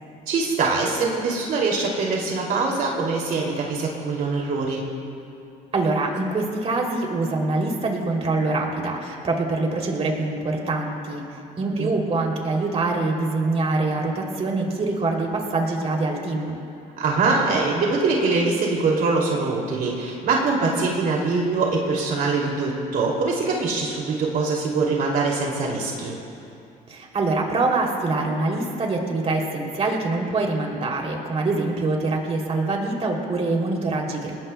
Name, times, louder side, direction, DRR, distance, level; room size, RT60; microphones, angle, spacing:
voice 1, 0.3-4.8 11.8-11.9 17.0-26.1, right 3 dB, 60° right, -2 dB, 2.7 m, -23 dB
voice 2, 5.7-11.2 11.6-16.5 26.9-34.5, right 3 dB, 40° right, 0 dB, 3.0 m, -24 dB
30.0 x 19.5 x 2.3 m, 2.6 s
cardioid pair, 110°, 17 cm